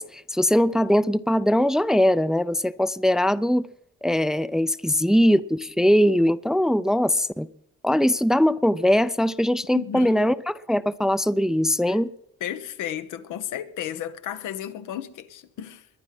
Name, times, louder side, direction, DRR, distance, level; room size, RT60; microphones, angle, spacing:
voice 1, 0.0-3.7 4.0-7.5 7.8-12.1, equal, ahead, 0.5 m, -21 dB
voice 2, 9.7-10.2 11.9-12.0 12.4-15.9, left 10 dB, 85° left, 1.3 m, -33 dB
21.5 x 9.8 x 6.0 m
cardioid pair, 90°, 30 cm